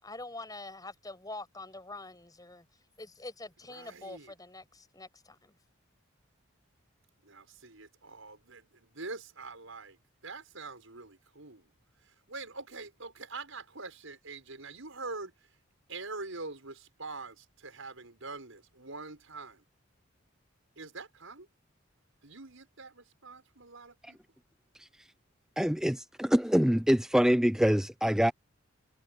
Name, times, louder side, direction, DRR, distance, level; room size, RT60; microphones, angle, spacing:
voice 1, 0.0-2.7 3.0-5.5, left 2 dB, 20° left, 6.1 m, -45 dB
voice 2, 3.7-4.3 7.2-10.0 10.2-11.7 12.3-15.3 15.9-19.6 20.8-21.5 22.2-24.2, right 3 dB, 80° right, 5.9 m, -44 dB
voice 3, 25.6-28.3, equal, 5° right, 0.4 m, -25 dB
head